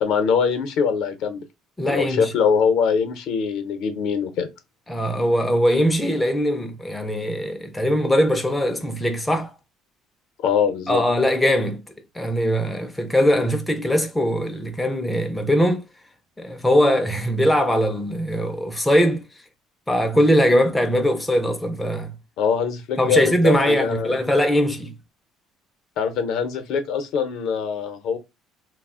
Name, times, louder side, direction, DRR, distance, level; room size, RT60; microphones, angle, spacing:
voice 1, 0.0-1.4 1.8-4.5 10.4-11.0 22.4-24.2 26.0-28.2, left 6 dB, 65° left, 0.6 m, -23 dB
voice 2, 1.8-2.3 4.9-9.5 10.9-11.8 12.1-15.8 16.4-19.3 19.9-22.1 23.0-24.9, equal, 5° left, 0.3 m, -21 dB
2.4 x 2.0 x 3.5 m
cardioid pair, 155°, 0 cm